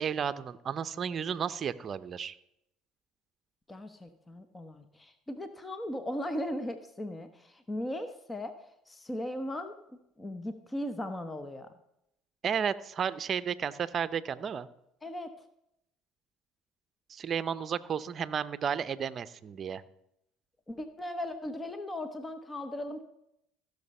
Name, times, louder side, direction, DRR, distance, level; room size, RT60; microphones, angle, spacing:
voice 1, 0.0-2.4 12.4-14.7 17.1-19.8, right 7 dB, 40° right, 14 dB, 0.7 m, -33 dB
voice 2, 3.7-8.5 8.9-9.7 10.2-11.7 15.0-15.3 20.7-23.0, left 1 dB, 15° left, 9 dB, 1.0 m, -37 dB
15.0 x 6.6 x 5.5 m, 0.79 s
hypercardioid pair, 75°, 0 cm